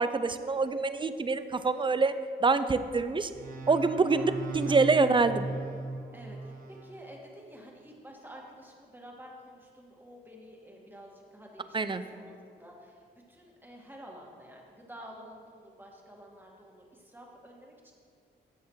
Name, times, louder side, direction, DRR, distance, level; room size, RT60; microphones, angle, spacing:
voice 1, 0.0-2.1 2.4-3.3 3.7-5.5 11.7-12.0, right 4 dB, 25° right, 11 dB, 0.5 m, -26 dB
sound 1, 3.3-6.9, right 3 dB, 45° right, 1.3 m, -38 dB
voice 2, 4.7-5.1 6.1-11.8 12.1-17.9, equal, 10° right, -2 dB, 1.9 m, -50 dB
12.0 x 7.2 x 3.1 m, 2.2 s
cardioid pair, 70°, 19 cm